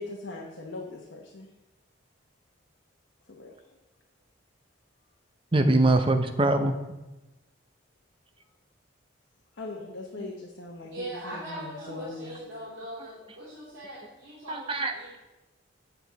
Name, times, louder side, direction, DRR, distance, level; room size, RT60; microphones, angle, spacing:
voice 1, 0.0-1.5 3.3-3.5 9.5-12.3, left 2 dB, 70° left, -1 dB, 1.0 m, -40 dB
voice 2, 5.5-6.7 10.2-10.3 14.5-15.2, right 2 dB, 25° right, 6 dB, 0.6 m, -23 dB
voice 3, 10.9-15.2, right 1 dB, 80° right, -9 dB, 2.8 m, -41 dB
8.1 x 7.1 x 4.0 m, 1.0 s
head